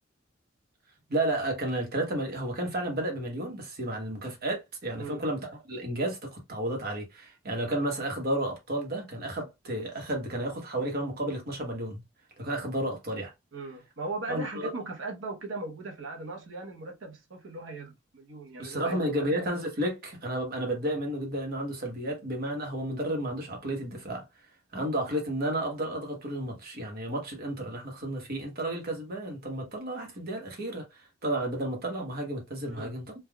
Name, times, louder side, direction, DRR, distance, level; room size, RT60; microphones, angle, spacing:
voice 1, 1.1-12.0 12.4-13.3 14.3-14.7 18.6-24.2 24.7-33.0, right 1 dB, 50° right, 1.0 m, -32 dB
voice 2, 13.5-19.3 32.6-32.9, right 2 dB, 80° right, 0.9 m, -38 dB
3.4 x 2.3 x 2.3 m
head